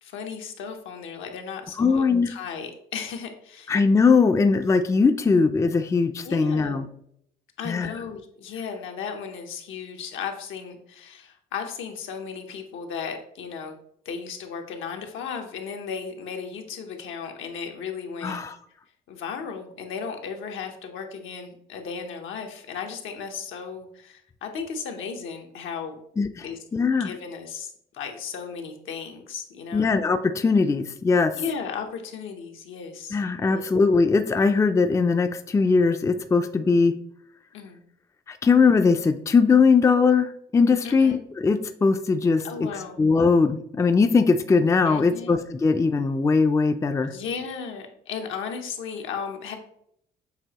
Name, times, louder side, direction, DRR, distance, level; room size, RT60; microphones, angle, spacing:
voice 1, 0.0-3.7 5.2-5.3 6.2-6.8 7.6-13.8 14.0-18.4 19.1-26.0 26.4-26.6 27.0-29.9 31.4-33.2 33.5-33.7 37.5-37.8 40.8-41.2 42.4-43.0 44.9-45.4 47.0-49.5, left 6 dB, 80° left, 4 dB, 0.8 m, -35 dB
voice 2, 1.8-2.3 3.7-6.8 7.7-7.9 18.2-18.5 26.2-26.5 26.7-27.1 29.7-31.4 33.1-37.0 38.3-42.5 43.0-47.1, left 4 dB, 15° left, 8 dB, 0.3 m, -20 dB
6.7 x 2.8 x 2.9 m, 0.70 s
cardioid pair, 90°, 20 cm